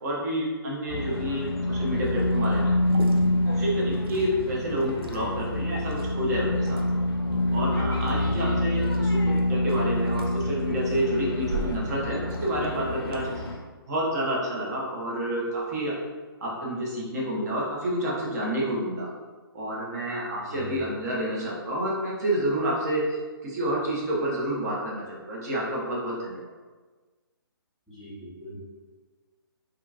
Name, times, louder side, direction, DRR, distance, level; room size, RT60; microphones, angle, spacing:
voice 1, 0.0-2.7 3.4-6.8 7.5-13.5 13.9-16.0 16.4-19.1 19.5-23.1 23.4-26.4, equal, 45° right, -4 dB, 0.7 m, -29 dB
sound 1, 0.9-13.6, left 1 dB, 85° left, 0.5 m, -27 dB
Liquid, 2.2-13.3, right 2 dB, 75° right, 0.4 m, -43 dB
voice 2, 8.0-8.6 20.5-20.8 27.9-28.6, right 1 dB, ahead, -12 dB, 1.2 m, -39 dB
2.8 x 2.3 x 2.4 m, 1.4 s
figure-of-eight pair, 140°, 13 cm